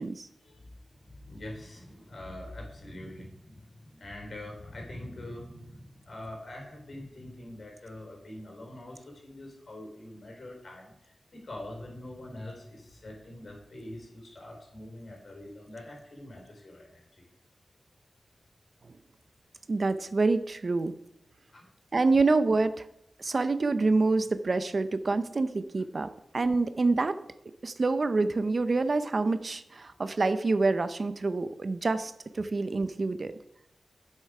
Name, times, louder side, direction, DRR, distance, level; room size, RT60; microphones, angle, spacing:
voice 1, 0.4-17.3 21.5-21.7 26.4-26.5, left 1 dB, 55° left, 1 dB, 3.8 m, -44 dB
voice 2, 19.7-21.0 21.9-22.9 23.2-27.2 27.6-33.4, right 3 dB, 50° right, 11 dB, 0.6 m, -27 dB
9.8 x 7.5 x 4.8 m, 0.79 s
wide cardioid pair, 90°, 0 cm